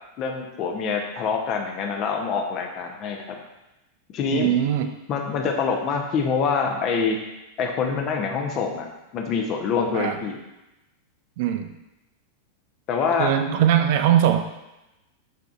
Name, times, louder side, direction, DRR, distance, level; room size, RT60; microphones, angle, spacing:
voice 1, 0.2-3.4 4.1-4.5 5.1-7.2 7.6-8.9 9.1-10.4 12.9-13.3, left 5 dB, 35° left, 2 dB, 0.7 m, -25 dB
voice 2, 4.3-4.9 9.9-10.2 11.4-11.7 13.2-14.4, right 10 dB, 50° right, 8 dB, 0.4 m, -20 dB
5.9 x 3.6 x 2.4 m, 0.97 s
figure-of-eight pair, 90°, 0 cm